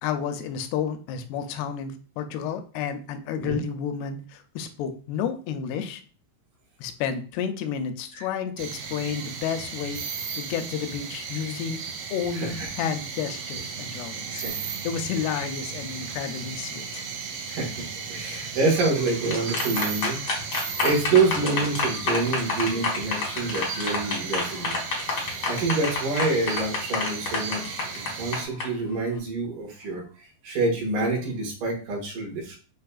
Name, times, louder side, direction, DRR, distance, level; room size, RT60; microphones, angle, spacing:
voice 1, 0.0-6.0 6.8-10.0 10.3-11.8 12.1-14.4 14.8-17.1, left 7 dB, 85° left, 8 dB, 2.5 m, -31 dB
sound 1, 8.6-28.5, right 6 dB, 85° right, 2.8 m, -35 dB
voice 2, 12.3-12.7 14.3-14.6 15.4-15.5 17.5-20.2 20.8-24.7 25.5-27.9 28.2-32.6, right 3 dB, 60° right, -2 dB, 2.7 m, -27 dB
sound 2, 18.9-28.6, left 4 dB, 60° left, 1.4 m, -28 dB
6.7 x 3.0 x 2.3 m, 0.38 s
omnidirectional pair, 4.8 m